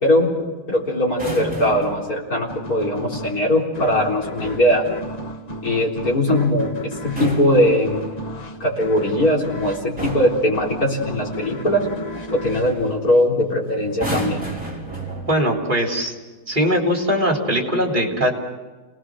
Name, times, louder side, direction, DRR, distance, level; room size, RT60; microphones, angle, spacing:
voice 1, 0.0-4.8 5.6-8.0 8.6-11.9 12.3-14.4, left 1 dB, 55° left, -2 dB, 4.3 m, -20 dB
sound 1, 1.1-2.1 4.2-4.8 6.9-8.3 9.3-9.6 10.0-10.5 12.1-12.3 12.6-12.9 13.9-15.6 16.5-16.7, right 2 dB, 5° right, 4.2 m, -31 dB
sound 2, 2.5-13.7, equal, 25° left, 1.4 m, -34 dB
voice 2, 15.3-16.1 16.5-18.3, equal, 25° right, 0 dB, 3.7 m, -20 dB
28.5 x 19.5 x 6.4 m, 1.3 s
omnidirectional pair, 1.9 m